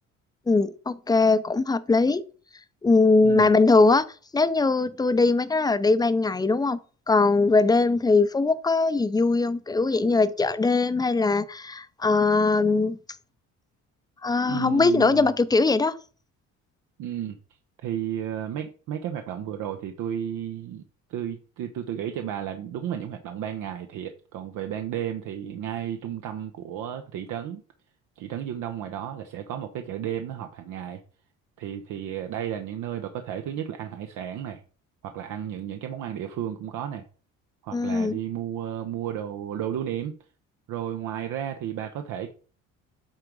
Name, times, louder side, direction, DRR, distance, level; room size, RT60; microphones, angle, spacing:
voice 1, 0.5-2.2 2.8-4.0 4.3-6.8 7.1-13.0 14.2-15.9 37.7-38.2, left 3 dB, 10° left, 0.6 m, -21 dB
voice 2, 14.4-15.3 17.0-17.4 17.8-20.8 21.1-27.6 28.2-31.0 31.6-34.6 35.0-37.0 37.6-40.1 40.7-42.3, right 10 dB, 75° right, 0.9 m, -33 dB
8.7 x 3.8 x 4.7 m
cardioid pair, 100°, 32 cm